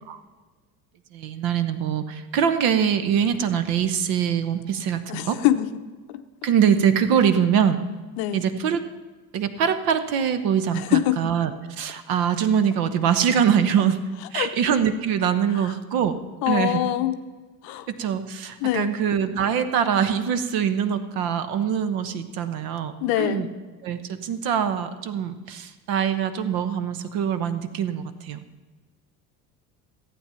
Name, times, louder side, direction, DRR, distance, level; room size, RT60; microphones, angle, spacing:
voice 1, 1.1-5.4 6.4-7.8 8.3-8.8 9.3-14.0 14.3-16.2 16.5-16.8 17.9-23.5 23.8-28.5, right 8 dB, 45° right, 11 dB, 1.1 m, -23 dB
voice 2, 5.1-5.7 6.1-6.2 7.4-7.5 8.2-8.4 10.7-11.3 14.3-14.5 15.5-15.7 16.4-17.1 17.6-17.9 18.6-18.9 23.0-23.5, left 14 dB, 45° left, 10 dB, 0.8 m, -24 dB
15.0 x 8.6 x 5.7 m, 1.3 s
figure-of-eight pair, 70°, 48 cm